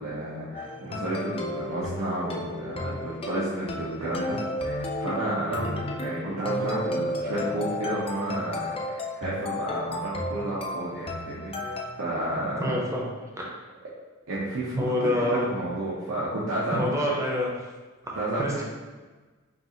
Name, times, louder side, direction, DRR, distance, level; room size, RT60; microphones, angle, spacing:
voice 1, 0.0-4.4 4.6-12.8 14.3-17.0 18.2-18.6, right 1 dB, 85° right, -8 dB, 0.8 m, -31 dB
sound 1, 0.5-11.9, left 1 dB, 25° left, 0.4 m, -33 dB
voice 2, 12.6-13.0 13.4-13.5 14.8-15.6 16.7-17.6 18.1-18.6, left 1 dB, 15° right, -3 dB, 0.7 m, -27 dB
5.1 x 2.5 x 2.8 m, 1.3 s
head